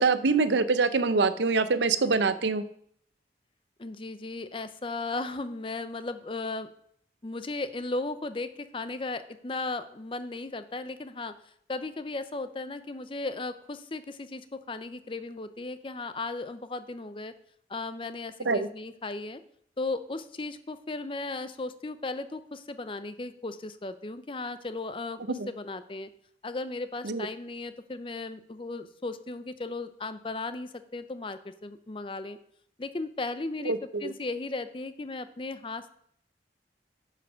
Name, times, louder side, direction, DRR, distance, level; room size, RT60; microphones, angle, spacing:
voice 1, 0.0-2.6 18.5-18.7 25.4-25.5 27.0-27.3 33.7-34.1, right 4 dB, 75° right, 13 dB, 0.7 m, -25 dB
voice 2, 3.8-6.7 7.2-11.3 11.7-17.3 17.7-19.4 19.8-26.1 26.4-32.4 32.8-35.9, left 3 dB, 30° left, 12 dB, 0.5 m, -36 dB
9.5 x 5.9 x 6.1 m, 0.67 s
head